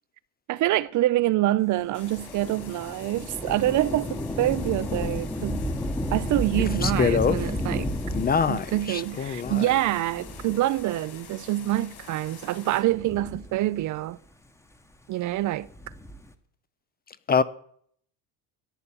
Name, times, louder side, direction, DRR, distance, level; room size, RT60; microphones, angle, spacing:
voice 1, 0.5-5.6 6.1-7.9 8.5-14.2 15.1-15.7, right 15 dB, 45° right, 0.5 m, -26 dB
sound 1, 1.9-12.8, left 6 dB, 65° left, 5.9 m, -47 dB
Thunder / Rain, 2.0-11.0 11.7-11.8 12.8-14.0 15.6-16.3, left 1 dB, 5° left, 1.0 m, -32 dB
voice 2, 6.8-7.4 8.1-9.7 17.3-17.4, left 6 dB, 25° left, 0.5 m, -24 dB
14.0 x 10.0 x 6.9 m
cardioid pair, 145°, 42 cm